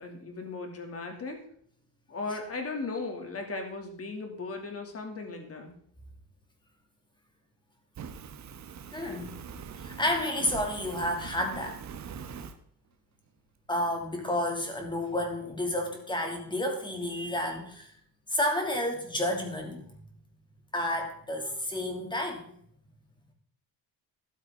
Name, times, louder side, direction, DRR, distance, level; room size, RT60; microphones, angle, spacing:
voice 1, 0.0-1.4 2.1-5.7, left 3 dB, 35° left, 4 dB, 2.7 m, -37 dB
Fire, 7.9-12.5, right 7 dB, 40° right, 1.2 m, -42 dB
voice 2, 8.9-9.3 9.8-11.8 13.7-17.9 18.3-19.8 20.7-22.5, left 1 dB, 10° left, 3 dB, 2.6 m, -31 dB
13.0 x 12.5 x 3.8 m, 0.62 s
cardioid pair, 160°, 42 cm